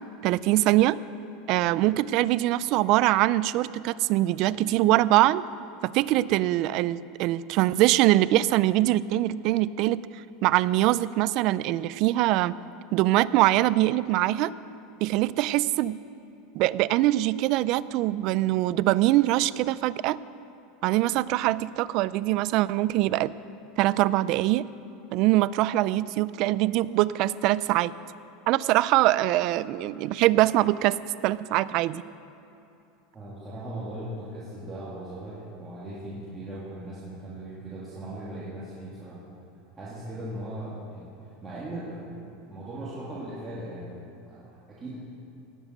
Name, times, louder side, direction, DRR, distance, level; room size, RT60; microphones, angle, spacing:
voice 1, 0.2-1.0 1.5-5.4 5.8-10.0 10.4-12.5 12.9-14.5 15.0-16.0 16.5-20.2 20.8-23.3 23.8-24.7 25.1-27.9 28.5-31.0 31.2-32.0, right 16 dB, 50° right, 18 dB, 0.4 m, -23 dB
voice 2, 33.1-39.2 39.8-44.0 44.3-45.0, right 1 dB, 20° right, -8 dB, 2.5 m, -38 dB
18.0 x 7.3 x 8.0 m, 2.8 s
supercardioid pair, 145°, 0 cm